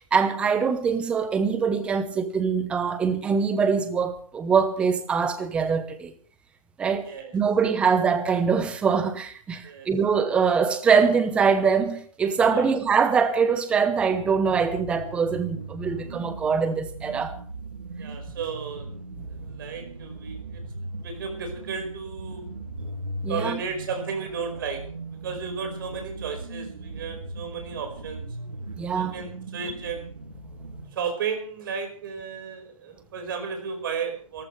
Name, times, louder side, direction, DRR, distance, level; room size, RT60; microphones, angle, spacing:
voice 1, 0.0-6.1 6.8-17.4 23.2-23.6 28.8-29.1, right 6 dB, 5° right, 0.9 m, -23 dB
voice 2, 7.0-7.4 9.6-9.9 12.5-12.7 18.0-18.9 19.3-20.6 21.0-22.5 23.3-24.8 25.2-28.3 28.9-30.1 30.9-34.5, right 6 dB, 40° right, 5.1 m, -34 dB
sound 1, 14.0-30.9, right 2 dB, 85° right, 6.5 m, -38 dB
25.0 x 14.5 x 3.3 m
hypercardioid pair, 160°, 18 cm